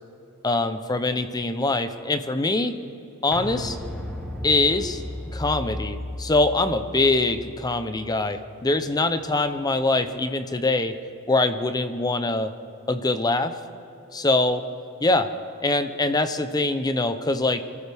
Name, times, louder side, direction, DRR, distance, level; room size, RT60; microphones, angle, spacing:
voice 1, 0.4-2.8 3.2-3.8 4.4-5.0 5.3-11.0 11.3-12.5 12.9-13.5 14.1-14.6 15.0-15.3 15.6-17.6, left 2 dB, 15° left, 10 dB, 0.6 m, -23 dB
sound 1, 3.3-9.0 9.3-9.4, left 1 dB, ahead, 1.3 m, -35 dB
24.0 x 14.0 x 3.5 m, 2.9 s
head